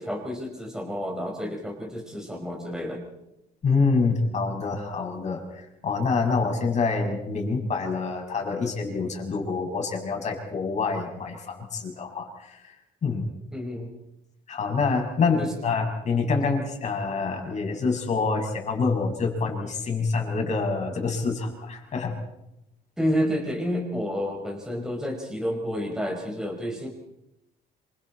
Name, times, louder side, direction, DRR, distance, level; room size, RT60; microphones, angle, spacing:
voice 1, 0.0-3.0 13.5-13.9 15.4-15.5 23.0-26.9, equal, 5° right, 0 dB, 4.8 m, -30 dB
voice 2, 3.6-5.4 5.8-12.7 13.0-13.3 14.5-22.2, left 4 dB, 45° left, 2 dB, 6.4 m, -26 dB
27.0 x 25.0 x 4.4 m, 0.88 s
cardioid pair, 110°, 17 cm